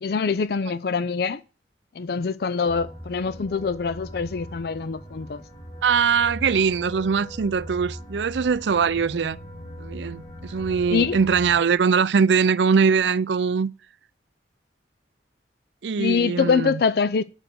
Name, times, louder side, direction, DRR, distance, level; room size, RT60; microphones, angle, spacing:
voice 1, 0.0-1.4 1.9-5.4 10.9-11.2 16.0-17.2, left 5 dB, 60° left, 0.4 m, -24 dB
sound 1, 2.7-11.6, equal, 40° left, 4.8 m, -40 dB
voice 2, 5.8-9.4 9.8-13.7 15.8-16.8, right 6 dB, 80° right, 0.5 m, -22 dB
Bass guitar, 9.0-12.4, left 1 dB, 90° left, 4.5 m, -44 dB
9.0 x 6.3 x 7.7 m
head